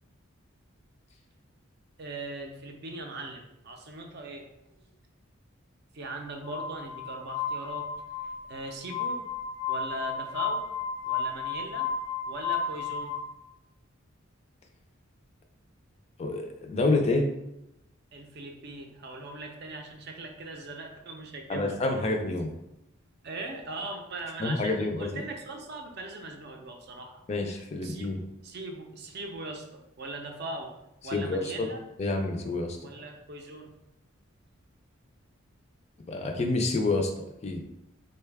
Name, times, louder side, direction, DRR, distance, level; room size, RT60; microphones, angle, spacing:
voice 1, 2.0-4.5 4.8-4.9 5.9-7.9 8.2-9.2 9.7-10.6 11.1-11.9 12.3-13.1 18.1-21.8 23.2-28.1 28.4-30.7 31.0-31.8 32.8-33.7, right 2 dB, 50° right, 3 dB, 0.5 m, -40 dB
Glass, 6.4-13.2, left 5 dB, 90° left, 0.6 m, -33 dB
voice 2, 16.2-17.3 21.5-22.5 24.4-25.2 27.3-28.2 31.1-31.7 32.0-32.8 36.1-37.1 37.4-37.6, left 2 dB, 30° left, 3 dB, 0.3 m, -28 dB
3.9 x 2.2 x 3.3 m, 0.86 s
head